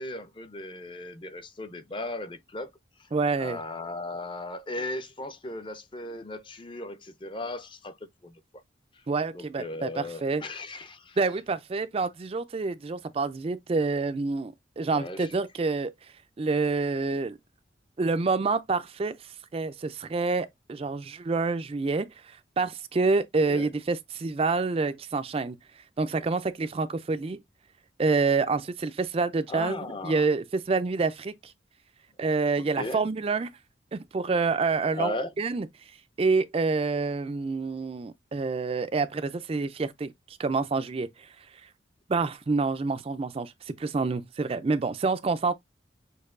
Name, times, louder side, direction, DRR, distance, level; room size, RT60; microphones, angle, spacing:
voice 1, 0.0-2.7 3.0-3.1 3.4-8.0 8.2-8.4 8.9-9.0 9.3-11.2 14.9-15.3 23.5-23.7 29.5-30.3 32.5-33.1 34.9-35.3, left 2 dB, 25° left, 0.6 m, -37 dB
voice 2, 3.1-3.6 9.1-10.4 11.2-15.9 16.4-17.4 18.0-19.1 19.5-25.6 26.0-27.4 28.0-31.5 32.2-33.5 33.9-35.7 36.2-41.3 42.1-45.5, right 4 dB, 30° right, 0.4 m, -27 dB
6.5 x 2.7 x 2.5 m
head